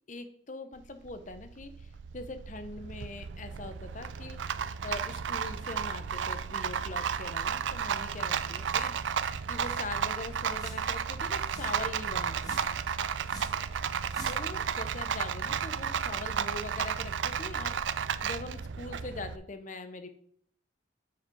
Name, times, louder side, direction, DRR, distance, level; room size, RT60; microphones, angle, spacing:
voice 1, 0.1-8.9 9.5-12.7 14.3-17.8 18.2-20.1, left 2 dB, 40° left, 9 dB, 0.8 m, -42 dB
Rattle, 0.8-19.4, right 7 dB, 70° right, 0.4 m, -33 dB
sound 1, 8.6-9.0 9.3-9.4 9.6-9.9 10.5-11.0 11.4-11.8 12.4-12.8 13.2-13.6 14.1-14.6, left 1 dB, 20° left, 1.5 m, -49 dB
7.2 x 6.2 x 4.6 m, 0.62 s
head